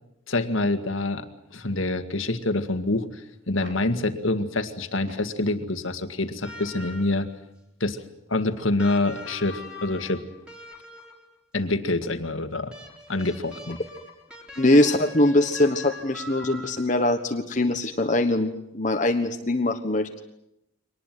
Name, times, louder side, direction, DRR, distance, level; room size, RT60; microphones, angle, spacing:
voice 1, 0.3-1.3 1.5-7.3 7.8-8.0 8.3-10.2 11.5-12.7 13.1-13.8, left 2 dB, 75° left, 8 dB, 2.0 m, -26 dB
sound 1, 3.4-4.0 4.9-5.4 6.8-6.9 8.6-8.7 8.9-9.0, right 1 dB, 65° right, 4.8 m, -46 dB
sound 2, 6.4-7.4 8.8-11.4 12.7-17.2 18.5-18.6, left 1 dB, 5° right, 4.4 m, -42 dB
voice 2, 14.6-20.2, left 1 dB, 40° left, 5 dB, 1.3 m, -22 dB
24.0 x 19.5 x 9.3 m, 0.85 s
head